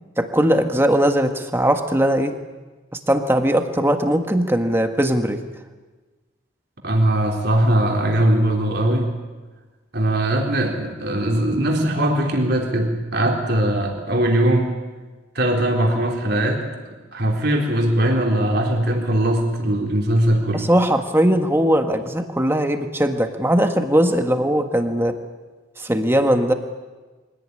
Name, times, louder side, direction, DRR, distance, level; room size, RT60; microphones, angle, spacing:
voice 1, 0.2-2.3 3.1-5.4 20.5-25.1 25.8-26.5, equal, 10° right, 6 dB, 1.6 m, -19 dB
voice 2, 6.8-9.1 9.9-14.7 15.3-16.6 17.1-20.7, right 1 dB, 50° right, 1 dB, 4.1 m, -20 dB
24.5 x 17.5 x 9.9 m, 1.3 s
head